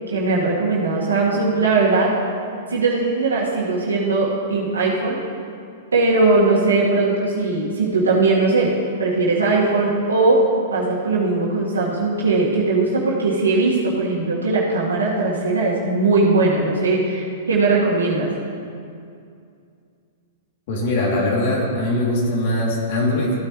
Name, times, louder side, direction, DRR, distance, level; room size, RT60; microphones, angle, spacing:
voice 1, 0.1-2.1 2.7-5.2 5.9-8.7 9.0-10.4 10.7-18.3, right 3 dB, 85° right, -4 dB, 1.9 m, -19 dB
voice 2, 20.7-23.3, left 1 dB, 55° left, -3 dB, 3.0 m, -21 dB
14.5 x 9.1 x 3.2 m, 2.4 s
hypercardioid pair, 110°, 0 cm